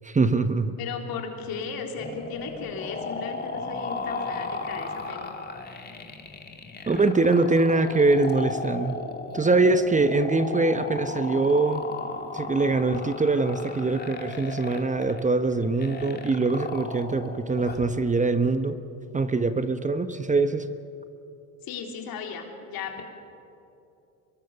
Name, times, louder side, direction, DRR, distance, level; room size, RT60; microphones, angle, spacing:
voice 1, 0.0-0.8 6.9-9.0 9.3-11.9 12.3-18.8 19.1-20.7, right 3 dB, 20° right, 10 dB, 1.0 m, -23 dB
voice 2, 0.8-5.3 21.6-23.0, left 5 dB, 65° left, 2 dB, 3.7 m, -35 dB
sound 1, 2.0-17.9, left 3 dB, 25° left, 2.7 m, -36 dB
24.5 x 22.5 x 6.9 m, 2.7 s
supercardioid pair, 90°, 38 cm